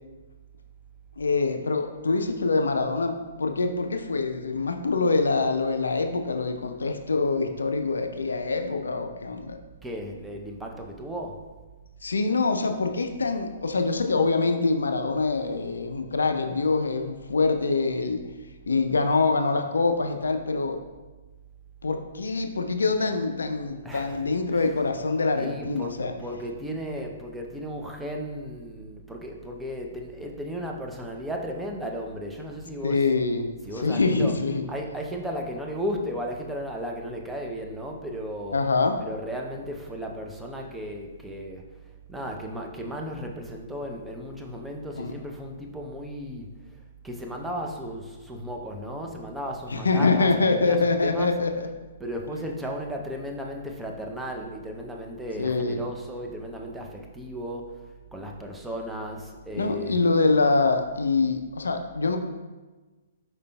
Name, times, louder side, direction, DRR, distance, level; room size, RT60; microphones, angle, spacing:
voice 1, 1.2-9.6 12.0-18.2 18.7-20.8 21.8-26.1 32.8-33.5 33.8-34.6 38.5-39.0 45.0-45.1 49.7-51.7 55.4-55.8 59.5-62.2, left 3 dB, 70° left, 6 dB, 0.3 m, -25 dB
voice 2, 9.8-11.4 23.8-24.2 24.5-24.6 25.4-33.1 33.7-34.3 34.7-38.6 39.0-41.6 42.1-51.3 52.0-57.8 58.1-60.0, equal, 5° right, 0 dB, 0.5 m, -35 dB
5.1 x 4.4 x 2.2 m, 1.2 s
figure-of-eight pair, 120°, 0 cm